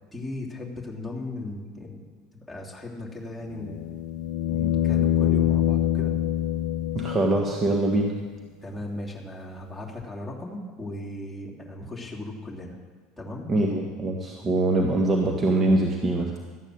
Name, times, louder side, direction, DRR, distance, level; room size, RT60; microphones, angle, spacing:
voice 1, 0.1-2.0 2.3-3.9 4.5-6.1 8.6-12.8 13.2-13.5, left 2 dB, ahead, -2 dB, 3.0 m, -37 dB
sound 1, 3.5-7.6 10.0-10.1, left 11 dB, 65° left, 0.5 m, -25 dB
voice 2, 6.9-8.1 13.5-16.3, right 2 dB, 30° right, 1 dB, 1.5 m, -23 dB
13.5 x 8.9 x 6.5 m, 1.4 s
hypercardioid pair, 75°, 0 cm